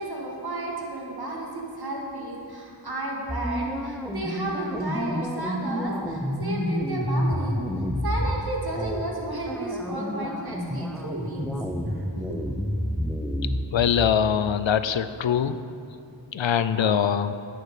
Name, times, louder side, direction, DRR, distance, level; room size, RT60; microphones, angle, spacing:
voice 1, 0.0-7.6 8.0-11.5 11.9-12.4, right 2 dB, 55° right, -2 dB, 2.1 m, -33 dB
sound 1, 3.3-8.4 8.8-9.0 9.5-13.9, equal, ahead, 0.8 m, -29 dB
voice 2, 13.7-15.6 16.3-17.3, left 8 dB, 75° left, 12 dB, 0.5 m, -23 dB
10.5 x 9.4 x 5.0 m, 2.6 s
wide cardioid pair, 55°, 46 cm